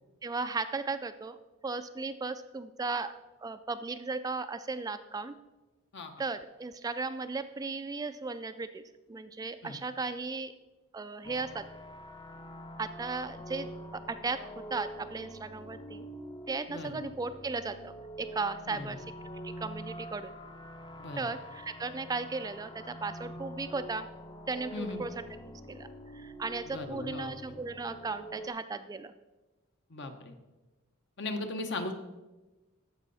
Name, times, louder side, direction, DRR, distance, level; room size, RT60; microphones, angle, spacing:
voice 1, 0.2-1.4 1.6-3.1 3.4-5.4 6.2-8.8 9.1-10.5 10.9-11.7 12.8-16.0 16.5-19.0 19.4-20.3 21.2-24.1 24.5-25.1 25.7-29.1, right 4 dB, 15° right, 11 dB, 0.3 m, -36 dB
sound 1, 11.2-28.5, equal, 20° left, 0.6 m, -45 dB
voice 2, 16.7-17.0 18.7-19.0 21.0-21.3 24.7-25.1 26.6-27.3 29.9-30.3 31.2-31.9, left 2 dB, 60° left, 6 dB, 1.0 m, -38 dB
14.0 x 5.5 x 4.1 m, 1.1 s
head